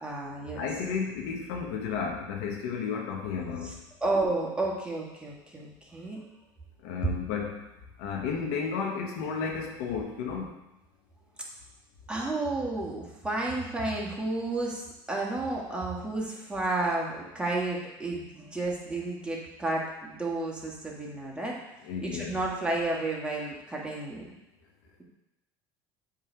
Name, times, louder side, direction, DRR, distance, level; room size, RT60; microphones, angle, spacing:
voice 1, 0.0-0.6 3.6-3.7 4.0-6.2 12.1-21.6 22.0-24.3, right 2 dB, 10° right, -3 dB, 1.6 m, -31 dB
voice 2, 0.6-3.7 6.8-7.6 8.0-10.5 21.9-22.4, left 6 dB, 80° left, 0 dB, 1.2 m, -32 dB
7.6 x 3.4 x 4.5 m, 0.94 s
supercardioid pair, 90°, 12 cm